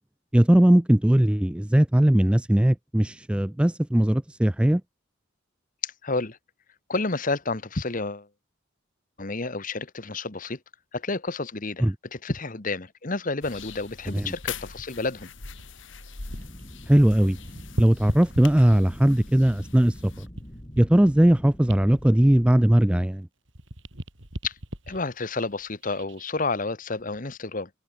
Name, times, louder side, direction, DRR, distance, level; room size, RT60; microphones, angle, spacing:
voice 1, 0.3-4.8 11.8-11.9 14.1-14.3 16.9-17.4 17.8-20.3 20.8-23.3, right 1 dB, 5° right, 0.3 m, -19 dB
voice 2, 5.8-6.4 6.9-8.3 9.2-10.6 10.9-15.3 24.4-24.5 24.9-27.7, left 3 dB, 45° left, 1.4 m, -30 dB
sound 1, 13.4-20.3, left 5 dB, 70° left, 2.3 m, -42 dB
sound 2, 13.9-16.6 16.9-19.1 19.6-23.2 23.4-26.2 26.8-27.0, equal, 70° right, 5.7 m, -39 dB
sound 3, 16.3-23.1, equal, 25° left, 4.8 m, -44 dB
head